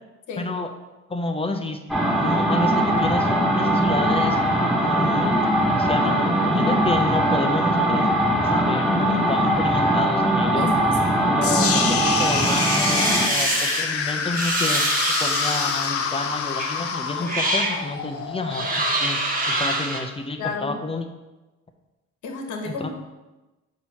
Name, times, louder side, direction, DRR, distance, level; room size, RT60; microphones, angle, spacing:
voice 1, 0.4-0.7 1.1-1.8 2.1-4.4 4.8-5.4 5.7-8.1 8.4-10.7 11.3-14.8 15.2-19.2 19.5-21.1 22.7-22.9, left 2 dB, 20° left, 5 dB, 0.6 m, -29 dB
sound 1, 1.9-13.4, right 1 dB, ahead, 1.0 m, -21 dB
voice 2, 10.5-11.1 17.2-17.4 20.4-20.8 22.2-22.9, left 4 dB, 75° left, 2 dB, 1.2 m, -32 dB
sound 2, 11.4-19.5, left 6 dB, 50° left, 0.7 m, -27 dB
sound 3, 12.1-13.8 14.3-15.9 16.6-16.7 17.2-17.8 18.5-20.0, right 2 dB, 30° right, 1.2 m, -25 dB
6.0 x 3.0 x 5.6 m, 1.1 s
cardioid pair, 90°, 30 cm